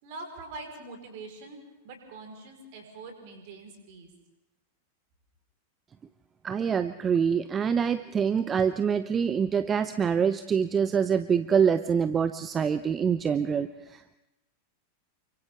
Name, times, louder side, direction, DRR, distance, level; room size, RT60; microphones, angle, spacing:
voice 1, 0.0-4.1, right 3 dB, 50° right, 4 dB, 4.8 m, -44 dB
voice 2, 6.4-14.2, right 7 dB, 20° right, 12 dB, 0.6 m, -25 dB
29.0 x 24.5 x 3.7 m, 0.99 s
figure-of-eight pair, 90°, 0 cm